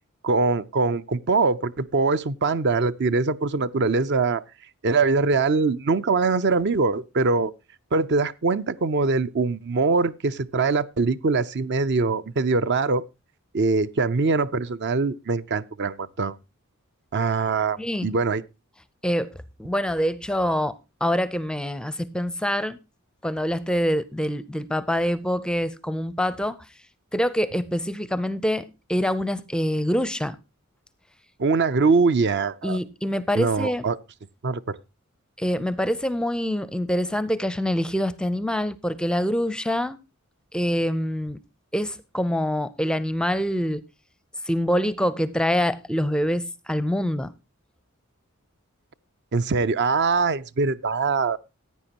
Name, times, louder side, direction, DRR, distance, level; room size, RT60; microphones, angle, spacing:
voice 1, 0.2-4.4 4.8-7.5 7.9-13.0 13.5-16.4 17.1-18.4 31.4-32.8 33.3-34.0 34.4-34.8 49.3-51.4, right 4 dB, 55° right, 0.5 m, -23 dB
voice 2, 17.8-18.1 19.0-19.3 19.6-22.8 23.2-26.7 27.1-30.4 32.6-33.8 35.4-40.0 40.5-41.4 41.7-43.8 44.5-47.3, equal, 5° left, 0.5 m, -25 dB
15.0 x 9.4 x 2.9 m
head